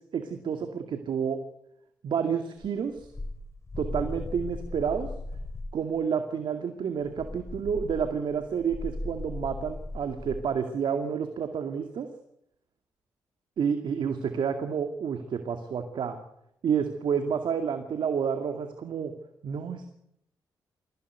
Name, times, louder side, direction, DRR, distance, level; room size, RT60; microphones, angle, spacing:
voice 1, 0.1-1.4 2.0-3.1 3.8-5.1 5.7-12.1 13.6-16.2 16.6-19.1 19.4-19.9, right 7 dB, 65° right, 7 dB, 2.2 m, -29 dB
sound 1, 2.6-5.8 7.0-10.5, left 2 dB, 35° left, 4.4 m, -38 dB
23.5 x 16.5 x 9.4 m, 0.77 s
hypercardioid pair, 45°, 9 cm